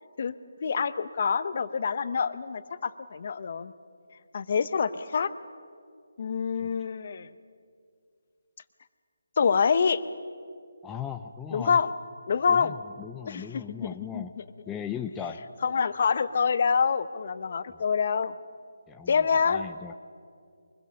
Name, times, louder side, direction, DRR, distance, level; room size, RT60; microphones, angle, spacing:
voice 1, 0.6-3.7 4.3-5.3 6.2-7.3 9.4-10.0 11.5-11.9 12.3-12.7 13.3-13.9 14.1-14.4 15.6-18.3 19.1-19.6, left 6 dB, 45° left, 13 dB, 0.9 m, -26 dB
voice 2, 10.8-11.8 12.5-14.3 14.7-15.4 17.7-17.8 18.9-19.9, left 8 dB, 10° left, 5 dB, 0.5 m, -38 dB
24.0 x 21.5 x 6.9 m, 2.3 s
figure-of-eight pair, 165°, 0 cm